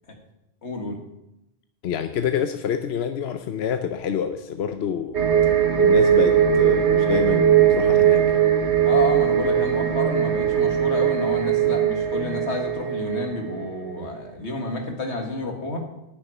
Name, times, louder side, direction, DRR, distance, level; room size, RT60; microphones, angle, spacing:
voice 1, 0.6-1.0 8.8-15.8, left 2 dB, 85° left, 3 dB, 2.1 m, -30 dB
voice 2, 1.8-5.2 5.8-8.3, left 8 dB, 70° left, 8 dB, 0.9 m, -27 dB
sound 1, 5.1-13.6 13.9-14.0, right 9 dB, 85° right, 1.5 m, -20 dB
9.8 x 6.8 x 9.1 m, 0.91 s
omnidirectional pair, 1.1 m